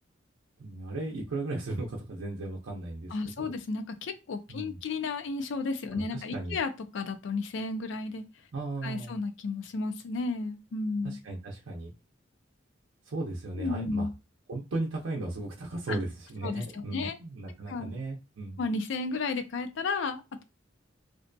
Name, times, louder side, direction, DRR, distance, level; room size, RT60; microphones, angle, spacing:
voice 1, 0.6-3.5 4.5-4.8 5.9-6.6 8.5-9.2 11.0-11.9 13.1-14.1 14.5-18.6, right 2 dB, 85° right, 0.5 m, -36 dB
voice 2, 3.1-8.2 8.8-11.2 13.6-14.1 15.9-16.0 16.4-17.2 17.7-17.9 18.6-20.4, left 3 dB, 70° left, 0.4 m, -33 dB
2.5 x 2.2 x 2.5 m
head